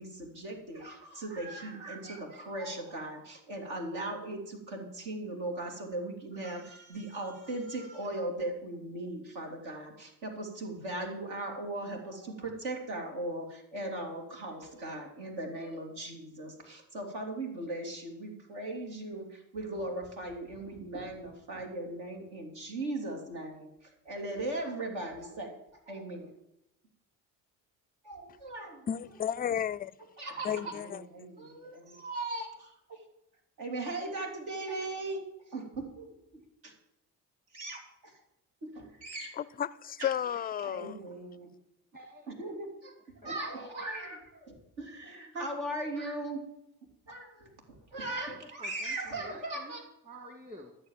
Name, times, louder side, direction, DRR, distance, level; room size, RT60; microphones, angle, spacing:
voice 1, 0.0-26.3 28.1-28.9 30.2-33.0 33.6-36.7 37.5-38.2 38.6-39.4 40.0-40.1 40.6-41.5 42.3-42.9 43.2-46.4 47.1-49.8, right 2 dB, 65° right, 3.0 m, -38 dB
voice 2, 28.9-29.9 30.4-31.0 39.4-41.0, left 9 dB, 20° left, 0.4 m, -33 dB
voice 3, 41.9-42.3 43.2-43.3 47.9-49.8 50.0-50.8, equal, 20° right, 2.2 m, -50 dB
13.5 x 6.7 x 7.3 m
hypercardioid pair, 55°, 46 cm